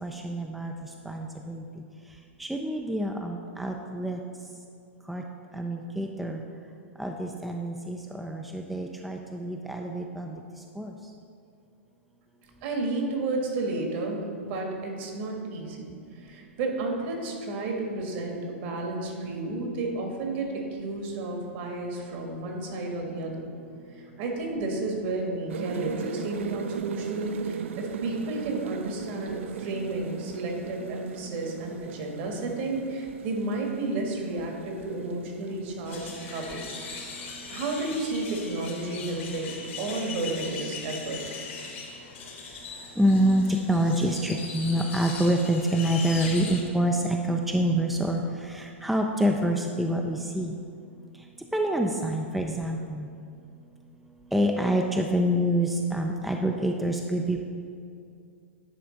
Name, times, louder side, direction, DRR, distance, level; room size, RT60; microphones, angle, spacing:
voice 1, 0.0-1.6 2.4-4.2 5.1-5.2 5.5-6.4 7.0-10.4 10.8-10.9 43.0-50.5 51.5-53.1 54.3-57.4, right 1 dB, ahead, 2 dB, 0.4 m, -27 dB
voice 2, 12.6-15.8 16.2-23.4 23.9-36.8 37.5-41.2, right 2 dB, 55° right, 1 dB, 1.6 m, -32 dB
sound 1, 25.5-37.3, right 7 dB, 70° right, 0.4 m, -39 dB
sound 2, 35.9-46.6, left 4 dB, 70° left, 1.5 m, -40 dB
10.0 x 3.4 x 5.1 m, 2.5 s
hypercardioid pair, 115°, 7 cm